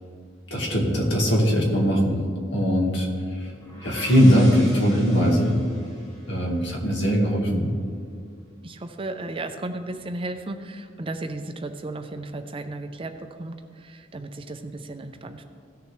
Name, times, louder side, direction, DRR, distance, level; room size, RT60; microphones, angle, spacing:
voice 1, 0.5-2.2 2.5-3.5 3.8-5.6 6.3-7.7, equal, 65° left, 0 dB, 1.8 m, -20 dB
sound 1, 3.3-7.2, equal, 20° left, 1.8 m, -43 dB
voice 2, 8.6-15.4, right 2 dB, 30° right, 7 dB, 0.5 m, -34 dB
16.5 x 6.8 x 3.2 m, 2.1 s
head